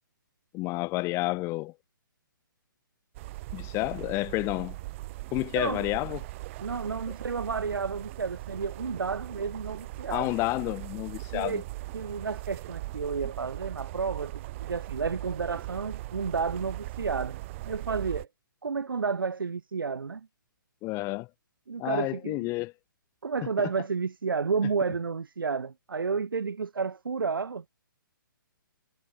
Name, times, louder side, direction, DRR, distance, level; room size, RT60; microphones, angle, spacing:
voice 1, 0.5-1.7 3.5-4.8 5.3-6.3 10.1-11.6 20.8-21.3 21.8-22.7, left 22 dB, 25° left, 1.3 m, -30 dB
sound 1, 3.1-18.3, right 19 dB, 35° right, 3.9 m, -39 dB
voice 2, 5.5-5.9 6.6-10.3 11.3-11.6 11.9-17.4 17.6-18.3 18.6-20.3 21.7-22.5 23.2-27.7, right 5 dB, 75° right, 2.2 m, -31 dB
figure-of-eight pair, 135°, 12 cm